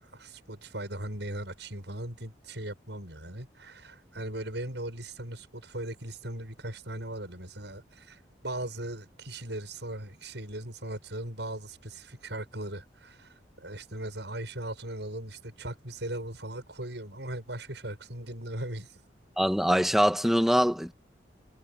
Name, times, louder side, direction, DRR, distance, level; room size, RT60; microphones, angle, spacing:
voice 1, 0.0-19.0, right 1 dB, 75° right, 7.7 m, -38 dB
voice 2, 19.4-20.9, equal, ahead, 1.8 m, -23 dB
head